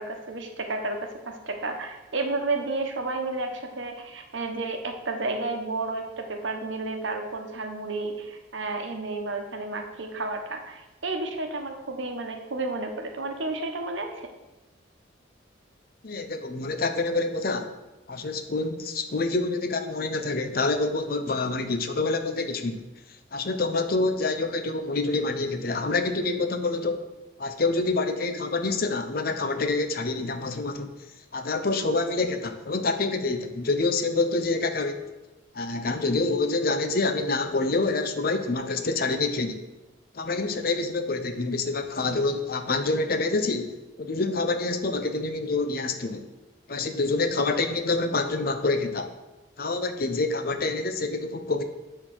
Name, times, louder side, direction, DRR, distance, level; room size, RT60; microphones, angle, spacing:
voice 1, 0.0-14.3, right 3 dB, 80° right, 4 dB, 1.1 m, -31 dB
voice 2, 16.0-17.7 18.1-22.8 23.3-27.0 27.4-30.9 31.3-35.0 35.5-39.6 40.1-46.2 46.7-49.1 49.6-51.6, left 3 dB, 50° left, 7 dB, 0.7 m, -27 dB
9.2 x 3.9 x 6.2 m, 1.0 s
head